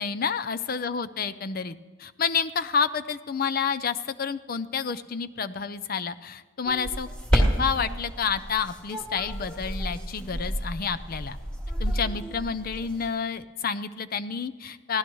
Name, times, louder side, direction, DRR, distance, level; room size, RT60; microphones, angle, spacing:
voice 1, 0.0-11.4 11.8-15.0, left 6 dB, 45° left, 12 dB, 0.5 m, -29 dB
sound 1, 6.6-13.1, equal, 5° left, 2.3 m, -30 dB
24.0 x 16.5 x 3.1 m, 1.3 s
head